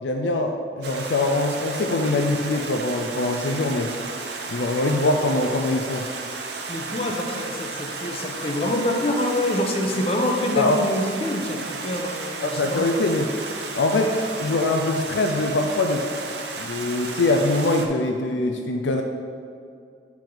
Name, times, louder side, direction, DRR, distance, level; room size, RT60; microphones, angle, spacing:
voice 1, 0.0-3.9 4.5-6.0 10.6-10.8 12.4-13.3 13.7-16.1 16.6-19.0, left 2 dB, 80° left, 4 dB, 0.5 m, -23 dB
Stream, 0.8-17.9, right 4 dB, 65° right, 0.7 m, -34 dB
voice 2, 6.7-12.9, left 1 dB, 30° left, 2 dB, 0.7 m, -26 dB
8.8 x 4.8 x 3.9 m, 2.3 s
head